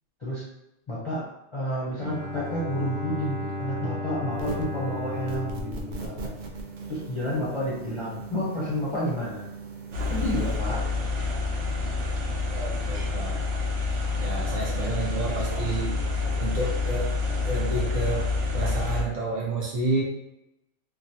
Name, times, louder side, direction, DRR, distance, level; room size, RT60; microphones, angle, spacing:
voice 1, 0.9-1.2 1.5-6.3 6.9-9.4 10.1-10.8, equal, 30° left, -8 dB, 0.6 m, -30 dB
Bowed string instrument, 1.9-7.2, left 2 dB, 5° right, 0.8 m, -35 dB
sound 1, 4.3-4.8 5.3-10.6, right 4 dB, 60° right, 0.5 m, -39 dB
sound 2, 9.9-19.0, left 3 dB, 75° right, 0.9 m, -28 dB
voice 2, 12.9-13.4 14.2-15.9 16.4-17.1 17.4-18.2 18.5-20.0, right 3 dB, 45° right, -4 dB, 0.9 m, -29 dB
3.2 x 2.1 x 2.7 m, 0.90 s
omnidirectional pair, 1.3 m